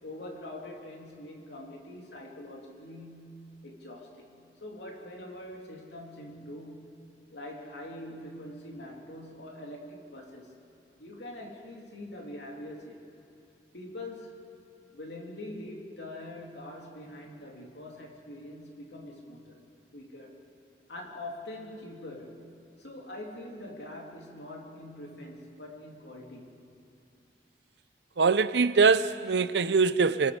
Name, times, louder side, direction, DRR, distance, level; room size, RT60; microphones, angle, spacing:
voice 1, 0.0-4.3 4.6-7.0 7.3-10.6 11.0-13.0 13.7-14.4 14.9-19.6 19.9-20.4 20.9-26.6, left 1 dB, 85° left, 3.1 m, -44 dB
voice 2, 28.2-30.3, right 4 dB, 80° right, 0.6 m, -23 dB
28.0 x 20.0 x 5.2 m
head